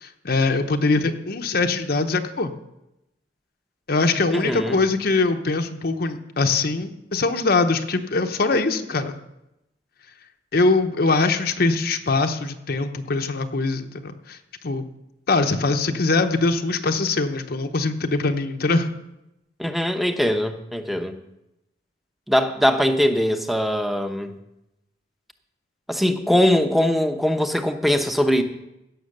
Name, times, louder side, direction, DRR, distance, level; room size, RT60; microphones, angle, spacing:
voice 1, 0.0-2.5 3.9-9.2 10.5-14.4 14.6-14.8 15.3-18.9, left 3 dB, 55° left, 6 dB, 0.8 m, -22 dB
voice 2, 4.3-4.8 19.6-21.2 22.3-24.3 25.9-28.4, left 1 dB, ahead, 7 dB, 0.8 m, -21 dB
16.0 x 6.4 x 6.5 m, 0.88 s
head